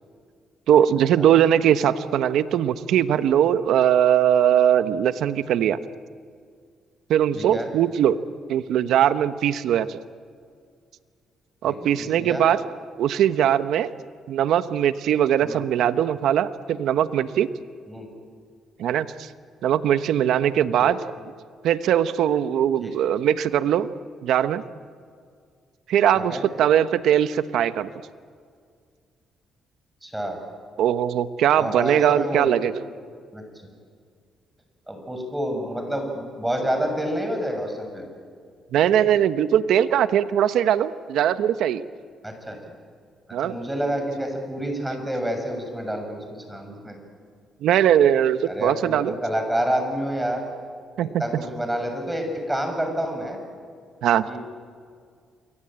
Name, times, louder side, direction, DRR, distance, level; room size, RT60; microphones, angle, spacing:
voice 1, 0.7-5.8 7.1-8.2 8.5-10.0 11.6-12.6 13.0-13.9 14.3-17.5 18.8-19.3 19.6-21.0 21.6-23.9 24.2-24.6 25.9-27.9 30.8-32.7 38.7-41.8 43.3-43.6 47.6-49.1 51.0-51.2 54.0-54.2, right 10 dB, 80° right, 12 dB, 1.1 m, -20 dB
voice 2, 7.3-7.7 11.6-12.4 15.4-15.6 17.9-18.1 20.8-20.9 22.8-22.9 26.1-26.4 30.0-30.4 31.6-32.7 33.3-33.4 34.9-38.1 42.2-42.7 43.4-47.0 48.5-50.4 51.0-53.4 54.3-54.4, equal, 10° right, 4 dB, 6.5 m, -28 dB
28.5 x 23.5 x 8.9 m, 2.1 s
cardioid pair, 90°, 0 cm